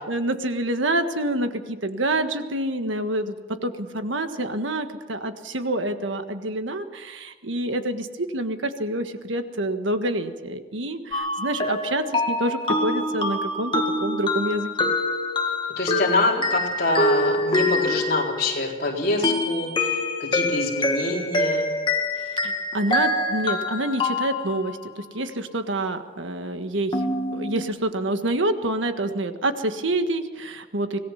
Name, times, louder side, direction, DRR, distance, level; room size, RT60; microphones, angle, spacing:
voice 1, 0.1-3.4 3.6-14.9 22.4-27.0 27.3-31.0, right 1 dB, 85° right, 8 dB, 1.6 m, -27 dB
sound 1, 11.1-18.7 19.2-24.9 26.9-27.7, left 2 dB, 25° left, 1.9 m, -25 dB
voice 2, 15.8-21.7, left 2 dB, 50° left, -2 dB, 4.1 m, -25 dB
25.5 x 18.0 x 5.8 m, 1.2 s
head